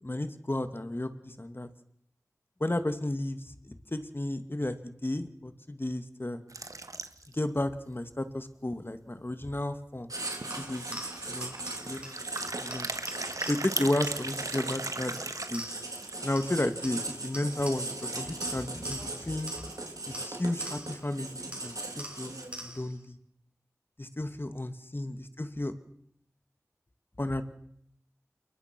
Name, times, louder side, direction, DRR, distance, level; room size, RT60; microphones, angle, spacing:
voice 1, 0.0-1.7 2.6-6.4 7.3-10.1 10.6-11.0 11.3-11.6 11.8-12.9 13.5-15.6 16.2-19.5 20.1-22.3 22.6-23.2 24.0-25.7 27.2-27.4, left 1 dB, 40° left, 9 dB, 2.2 m, -33 dB
sound 1, 6.5-7.4 7.9-8.0 8.2-8.3 8.7-8.8 10.0-10.1 10.4-10.7 11.7-16.4, right 2 dB, 70° right, 1.7 m, -37 dB
Writing, 10.1-22.7, right 2 dB, 90° right, 4.0 m, -39 dB
sound 2, 10.5-16.0 16.3-18.1 18.4-21.1 21.5-23.0, right 1 dB, 20° right, 6.2 m, -45 dB
28.5 x 22.0 x 6.2 m, 0.70 s
wide cardioid pair, 45°, 6 cm